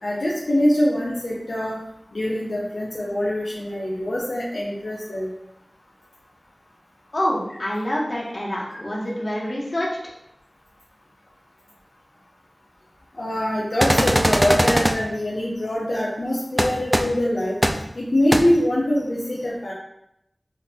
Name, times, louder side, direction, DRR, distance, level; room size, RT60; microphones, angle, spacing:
voice 1, 0.0-1.8 2.1-5.3 13.2-17.5 18.0-19.7, left 1 dB, 85° left, -6 dB, 0.6 m, -23 dB
voice 2, 7.1-9.9, equal, 55° left, -4 dB, 1.0 m, -26 dB
sound 1, 13.8-14.9 16.6-16.7 16.9-17.0 17.6-17.7 18.3-18.4, equal, 15° right, 0.3 m, -18 dB
5.6 x 2.4 x 2.2 m, 0.79 s
wide cardioid pair, 45°, 0 cm